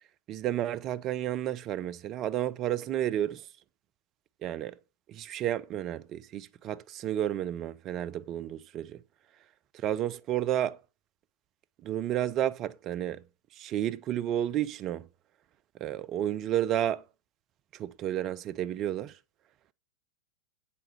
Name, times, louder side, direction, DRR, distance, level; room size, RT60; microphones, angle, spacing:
voice 1, 0.3-3.5 4.4-4.8 5.1-9.0 9.7-10.8 11.8-13.2 13.5-15.1 15.8-17.0 17.7-19.2, right 11 dB, 35° right, 0.6 m, -31 dB
8.5 x 8.3 x 6.2 m
figure-of-eight pair, 90°, 0 cm